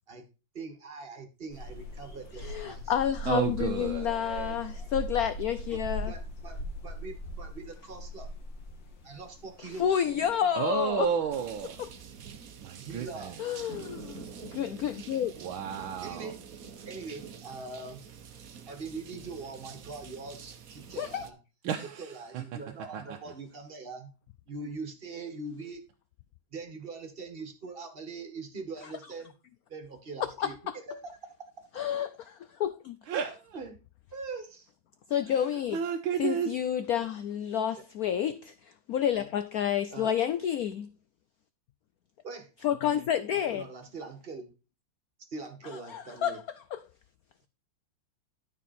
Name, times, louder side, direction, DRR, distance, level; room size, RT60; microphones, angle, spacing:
voice 1, 0.5-2.9 5.7-8.3 9.0-10.1 12.8-13.4 16.0-16.3 16.8-18.0 18.7-21.4 22.0-24.1 24.5-25.8 26.5-29.3 29.7-30.5 30.9-31.5 33.5-33.8 34.1-34.7 39.9-40.1 42.2-42.5 43.5-44.5 45.3-46.4, right 3 dB, 30° right, 1.4 m, -42 dB
sound 1, 1.5-11.9, equal, 65° left, 2.3 m, -40 dB
voice 2, 2.4-6.1 9.8-11.1 11.8-11.9 13.4-15.3 21.0-21.2 30.4-30.5 31.8-33.0 35.1-35.8 36.2-38.5 38.9-40.9 42.6-43.7 45.9-46.4 46.7-46.8, left 9 dB, 85° left, 0.8 m, -29 dB
voice 3, 3.3-4.6 10.5-11.8 12.6-13.4 15.4-16.3 21.6-22.4 22.9-23.2 33.1-33.6 35.7-36.5, right 8 dB, 80° right, 1.6 m, -32 dB
sound 2, 11.3-21.3, right 6 dB, 55° right, 1.1 m, -47 dB
12.5 x 4.6 x 4.2 m
omnidirectional pair, 2.2 m